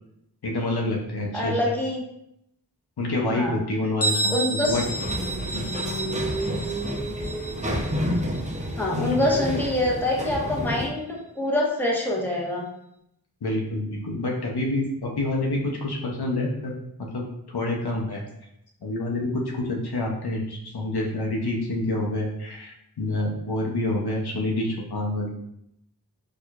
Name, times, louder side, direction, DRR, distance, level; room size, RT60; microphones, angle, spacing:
voice 1, 0.4-1.6 3.0-4.8 5.5-5.6 9.0-9.2 13.4-16.8 17.1-18.2 18.8-25.3, left 2 dB, 85° left, -1 dB, 0.7 m, -27 dB
voice 2, 1.3-2.0 3.3-3.6 4.3-4.8 8.8-12.6, left 1 dB, 5° left, -4 dB, 0.9 m, -25 dB
Bell, 4.0-9.5, right 2 dB, 40° left, 0.6 m, -31 dB
sound 1, 4.6-10.9, equal, 20° right, 0.6 m, -29 dB
4.5 x 2.4 x 2.3 m, 0.78 s
wide cardioid pair, 55°, 38 cm